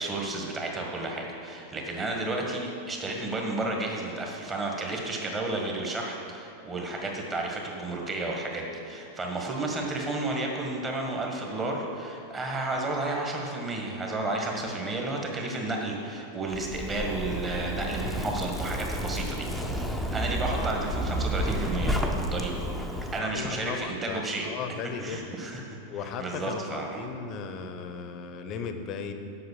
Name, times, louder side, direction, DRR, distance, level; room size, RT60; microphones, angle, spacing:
voice 1, 0.0-19.7 20.1-21.9 22.3-22.6 23.1-24.5 25.0-27.1, right 2 dB, 20° right, 0 dB, 1.7 m, -32 dB
Zipper (clothing), 16.5-23.2, equal, ahead, 0.8 m, -31 dB
voice 2, 23.2-25.3 25.9-29.1, left 5 dB, 35° left, 7 dB, 0.8 m, -36 dB
7.8 x 6.4 x 7.4 m, 2.7 s
figure-of-eight pair, 90°, 0 cm